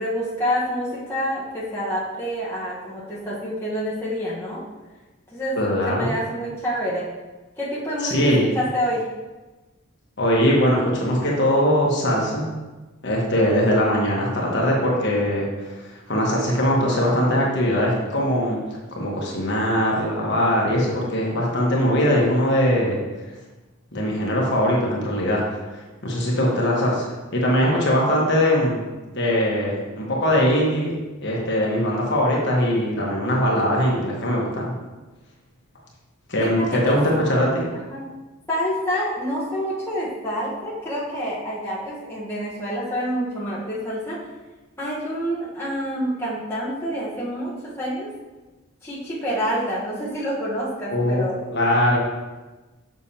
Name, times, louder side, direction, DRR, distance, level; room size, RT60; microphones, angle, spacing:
voice 1, 0.0-4.6 5.3-5.6 5.8-7.1 7.6-9.0 36.4-37.0 37.9-38.1 38.5-44.2 44.8-48.1 48.8-51.5, equal, 10° left, -8 dB, 1.2 m, -27 dB
voice 2, 5.6-6.1 8.0-8.5 10.2-12.4 13.0-15.8 16.1-18.6 18.9-23.0 23.9-25.4 26.0-28.8 29.1-34.7 36.3-37.6 50.9-51.2 51.5-52.0, equal, 55° left, -3 dB, 1.3 m, -21 dB
6.9 x 6.1 x 2.9 m, 1.2 s
head